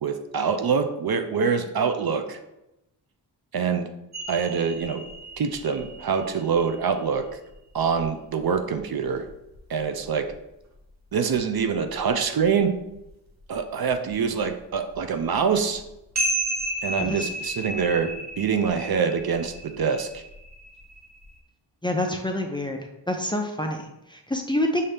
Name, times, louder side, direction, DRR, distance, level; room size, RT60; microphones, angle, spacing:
voice 1, 0.0-2.4 3.5-3.9 4.3-5.0 5.4-7.4 7.7-9.3 9.7-10.3 11.1-12.7 13.5-15.8 16.8-20.2, right 6 dB, 55° right, 7 dB, 0.5 m, -25 dB
sound 1, 4.1-10.4 10.7-10.8 11.2-12.6 12.9-13.1 13.4-21.4, right 1 dB, 40° right, 0.9 m, -34 dB
voice 2, 17.0-17.3 21.8-22.8 23.1-24.8, left 1 dB, 10° left, 2 dB, 0.5 m, -27 dB
5.5 x 2.7 x 3.3 m, 0.90 s
wide cardioid pair, 70°, 45 cm